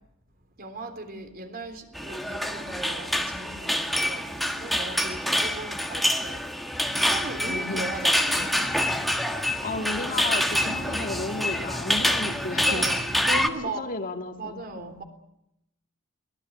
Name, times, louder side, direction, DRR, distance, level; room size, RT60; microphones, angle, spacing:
voice 1, 0.6-6.4 6.9-9.1 12.6-13.9 14.4-15.0, right 2 dB, 45° right, 3.6 m, -38 dB
sound 1, 1.9-13.5, equal, ahead, 1.5 m, -26 dB
voice 2, 7.4-7.9 9.6-12.9 13.8-15.0, left 3 dB, 40° left, 2.3 m, -33 dB
23.0 x 19.5 x 8.8 m
head